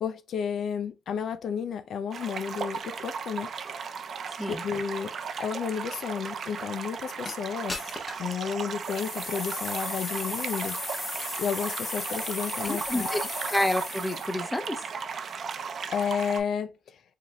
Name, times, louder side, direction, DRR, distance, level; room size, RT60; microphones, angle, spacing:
voice 1, 0.0-3.5 4.4-10.8 11.1-13.3 15.9-17.0, left 7 dB, 65° left, 0.4 m, -32 dB
sound 1, 2.1-16.4, right 6 dB, 55° right, 0.6 m, -36 dB
sound 2, 7.3-7.4 7.7-8.3 8.8-14.4, left 2 dB, 30° left, 1.1 m, -36 dB
voice 2, 12.6-13.2 13.5-14.8, left 1 dB, 10° left, 0.7 m, -29 dB
4.7 x 3.4 x 2.2 m
cardioid pair, 90°, 0 cm